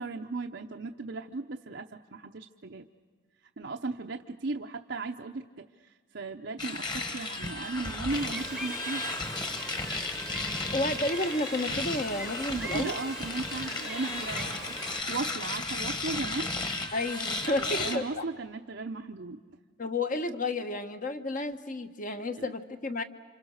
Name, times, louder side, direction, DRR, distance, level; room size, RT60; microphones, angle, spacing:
voice 1, 0.0-2.9 3.6-5.7 6.1-9.0 12.5-14.7 15.1-16.5 17.4-19.4 22.4-22.5, right 3 dB, 55° right, 3 dB, 0.8 m, -36 dB
sound 1, 6.6-18.0, left 2 dB, 20° left, 1.6 m, -34 dB
Gull seagull, 8.1-15.0, right 2 dB, 5° right, 1.0 m, -42 dB
voice 2, 10.7-12.9 16.9-18.2 19.8-23.0, left 2 dB, 40° left, 8 dB, 1.2 m, -31 dB
29.5 x 27.0 x 6.5 m, 1.5 s
head